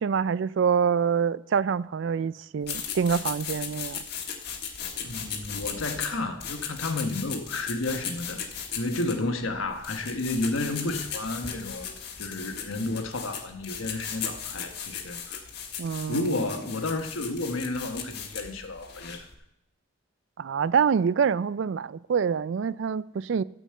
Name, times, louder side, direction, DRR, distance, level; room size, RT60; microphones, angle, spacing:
voice 1, 0.0-4.0 15.8-16.3 20.4-23.4, right 6 dB, 60° right, 0.3 m, -26 dB
sound 1, 2.6-19.3, left 7 dB, 50° left, 1.5 m, -37 dB
voice 2, 5.0-8.4 8.7-15.4 16.1-19.2, left 2 dB, 75° left, 1.2 m, -31 dB
13.5 x 5.2 x 7.6 m
head